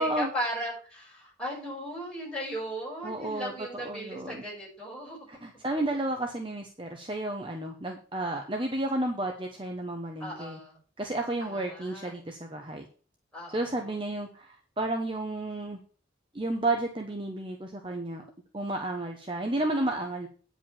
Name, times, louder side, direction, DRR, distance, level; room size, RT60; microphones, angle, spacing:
voice 1, 0.0-5.2 10.2-10.8 11.4-12.1 13.3-13.6, equal, 5° left, -6 dB, 6.4 m, -36 dB
voice 2, 3.0-4.4 5.3-10.6 11.0-12.8 13.5-15.8 16.3-18.2 18.5-20.3, right 2 dB, 25° right, 3 dB, 0.9 m, -32 dB
9.4 x 5.1 x 7.2 m, 0.41 s
head